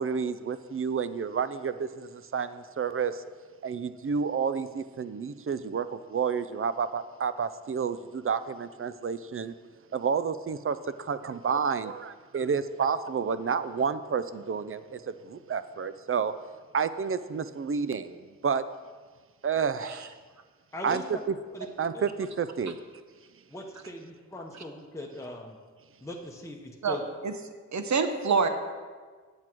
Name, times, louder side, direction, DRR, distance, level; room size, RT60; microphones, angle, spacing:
voice 1, 0.0-3.2 3.6-9.5 9.9-16.3 16.7-18.6 19.4-20.1 20.8-21.0 21.3-21.4 21.8-22.8, right 6 dB, 45° right, 13 dB, 0.4 m, -30 dB
voice 2, 20.7-21.2 21.5-21.7 21.9-22.1 23.5-25.6 26.0-27.0, left 1 dB, 10° left, 0 dB, 0.9 m, -40 dB
voice 3, 26.8-27.3 27.7-28.5, right 5 dB, 65° right, 8 dB, 0.8 m, -27 dB
8.2 x 7.7 x 4.5 m, 1.5 s
wide cardioid pair, 65°, 31 cm